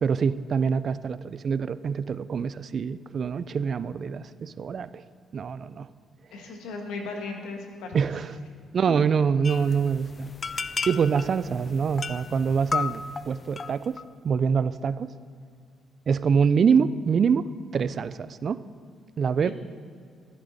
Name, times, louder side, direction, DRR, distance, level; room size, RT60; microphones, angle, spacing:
voice 1, 0.0-5.0 5.3-5.9 7.9-8.4 8.7-10.3 10.9-14.0 14.2-15.1 16.1-17.5 17.7-18.6 19.2-19.5, right 6 dB, 50° right, 16 dB, 0.3 m, -25 dB
voice 2, 6.3-7.9 19.4-19.5, left 3 dB, 85° left, 3 dB, 1.4 m, -36 dB
sound 1, 9.4-14.0, left 5 dB, 35° left, 0.3 m, -34 dB
14.0 x 8.3 x 4.1 m, 2.1 s
cardioid pair, 90°, 0 cm